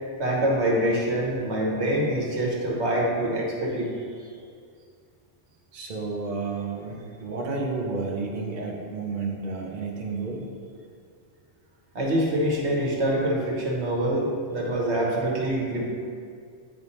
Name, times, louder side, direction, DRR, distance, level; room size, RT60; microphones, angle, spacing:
voice 1, 0.2-4.3 11.9-15.9, right 1 dB, 65° right, -2 dB, 1.4 m, -25 dB
voice 2, 5.7-10.5, right 4 dB, 45° right, -2 dB, 0.8 m, -31 dB
9.5 x 3.5 x 4.2 m, 2.3 s
omnidirectional pair, 1.3 m